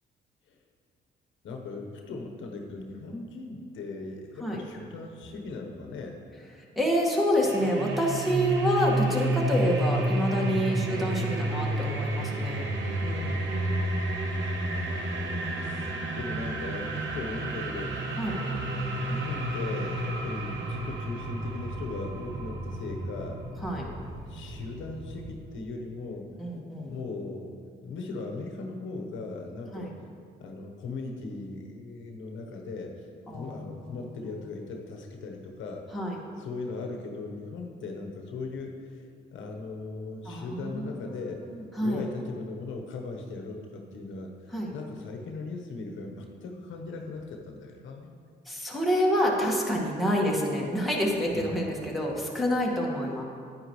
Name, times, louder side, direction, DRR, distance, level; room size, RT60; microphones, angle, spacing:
voice 1, 1.4-6.2 10.7-11.0 14.6-18.0 18.4-23.4 24.3-26.3 26.9-27.6 27.8-29.9 30.4-33.1 33.3-35.8 36.4-39.0 39.3-41.4 41.8-48.1 51.3-51.8, left 3 dB, 75° left, 2 dB, 1.1 m, -38 dB
voice 2, 6.8-12.6 13.0-13.5 18.2-18.4 23.6-23.9 26.4-26.9 29.7-29.9 33.3-34.0 35.9-36.2 40.3-41.1 41.7-42.0 44.5-44.7 48.5-53.2, equal, ahead, -3 dB, 1.7 m, -28 dB
sound 1, 7.4-25.3, right 1 dB, 70° right, 1.1 m, -31 dB
9.6 x 9.5 x 3.2 m, 2.2 s
cardioid pair, 90°, 20 cm